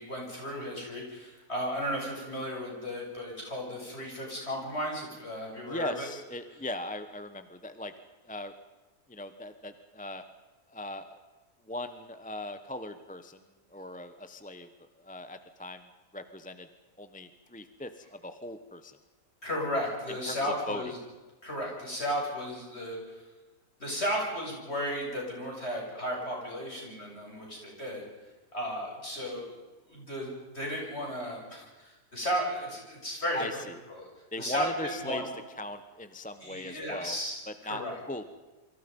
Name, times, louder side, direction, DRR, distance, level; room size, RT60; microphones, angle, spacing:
voice 1, 0.0-6.1 19.4-21.0 21.4-23.2 23.8-28.0 28.5-29.5 29.9-33.5 33.9-34.1 34.4-35.3 36.4-38.0, equal, 45° left, -1 dB, 7.8 m, -34 dB
voice 2, 5.6-7.9 8.2-8.5 9.1-10.2 10.7-11.2 11.6-13.4 13.7-14.7 15.0-15.8 16.1-16.7 17.0-19.0 20.3-20.8 33.3-33.7 34.3-35.2 35.5-37.2 37.6-37.8 38.1-38.2, left 1 dB, 5° left, 9 dB, 1.0 m, -39 dB
28.5 x 24.5 x 5.4 m, 1.2 s
omnidirectional pair, 1.5 m